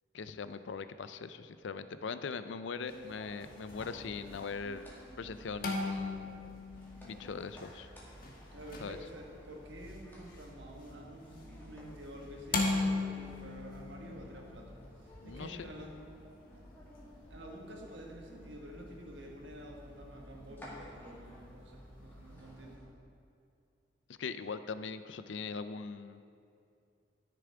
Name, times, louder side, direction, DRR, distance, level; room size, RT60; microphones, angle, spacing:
voice 1, 0.1-4.9 5.2-6.3 7.1-7.9 8.8-9.0 15.2-15.7 24.2-26.2, left 5 dB, 75° left, 12 dB, 0.5 m, -41 dB
sound 1, 2.9-22.8, left 3 dB, 50° left, 1.3 m, -41 dB
sound 2, 3.7-22.9, equal, 10° left, 2.1 m, -53 dB
voice 2, 8.5-14.8 15.2-15.9 17.3-22.8, equal, 70° right, 0 dB, 1.6 m, -49 dB
12.5 x 6.9 x 4.8 m, 2.6 s
head